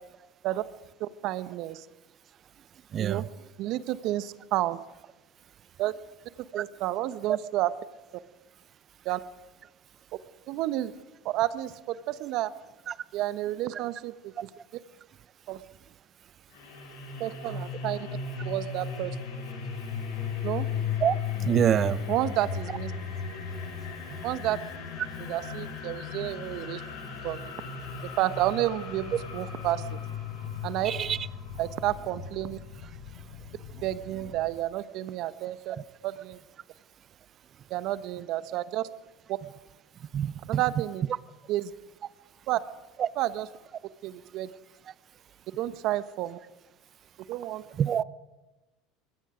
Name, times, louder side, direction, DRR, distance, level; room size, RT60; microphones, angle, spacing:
voice 1, 1.0-1.9 3.0-3.3 3.6-4.8 5.8-5.9 6.5-7.7 9.0-9.2 10.5-10.9 11.2-12.5 13.1-14.5 15.5-15.6 17.2-18.1 18.4-19.2 20.4-20.7 22.1-22.9 24.2-24.6 25.2-26.8 27.2-27.5 28.0-30.0 30.6-30.9 31.6-32.6 33.8-35.8 36.0-36.4 37.7-38.9 39.3-39.4 40.5-41.0 41.5-41.7 42.5-42.6 43.2-43.5 44.0-44.5 45.6-46.4 47.3-47.6, right 15 dB, 60° right, 14 dB, 1.1 m, -30 dB
sound 1, 16.5-34.5, left 6 dB, 75° left, 7.0 m, -36 dB
voice 2, 21.4-22.0 30.8-31.2 40.1-40.6 43.0-43.1 47.8-48.0, right 9 dB, 40° right, 18 dB, 0.8 m, -25 dB
25.0 x 21.0 x 5.1 m, 1.1 s
hypercardioid pair, 85°, 0 cm